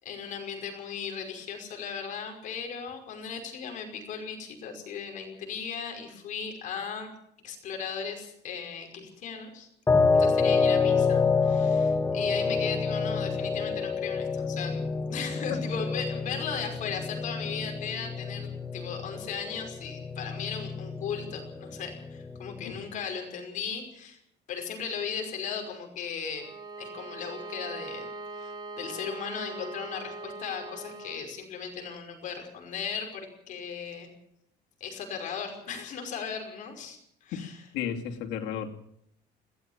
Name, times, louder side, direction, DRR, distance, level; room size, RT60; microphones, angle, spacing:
voice 1, 0.0-7.1 7.4-9.7 10.1-24.2 24.5-26.5 26.8-34.1 34.8-37.7, left 6 dB, 45° left, 3 dB, 5.5 m, -37 dB
sound 1, 9.9-22.9, left 4 dB, 15° left, 1.7 m, -28 dB
Bowed string instrument, 26.3-31.3, right 2 dB, 20° right, 4.0 m, -41 dB
voice 2, 37.7-38.7, left 8 dB, 90° left, 3 dB, 2.9 m, -33 dB
21.0 x 17.5 x 7.4 m, 0.73 s
cardioid pair, 175°, 18 cm